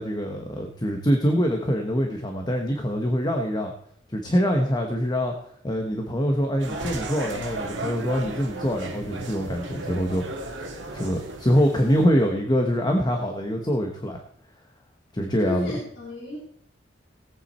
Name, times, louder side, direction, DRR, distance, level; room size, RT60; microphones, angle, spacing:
voice 1, 0.0-3.7 4.1-5.3 5.6-10.2 10.6-14.2 15.1-15.7, equal, 25° left, 3 dB, 1.2 m, -24 dB
sound 1, 6.6-12.1, right 2 dB, 75° right, 2.1 m, -35 dB
voice 2, 11.7-12.3 15.4-16.4, left 1 dB, 70° left, -5 dB, 4.2 m, -34 dB
18.0 x 8.4 x 4.3 m, 0.67 s
head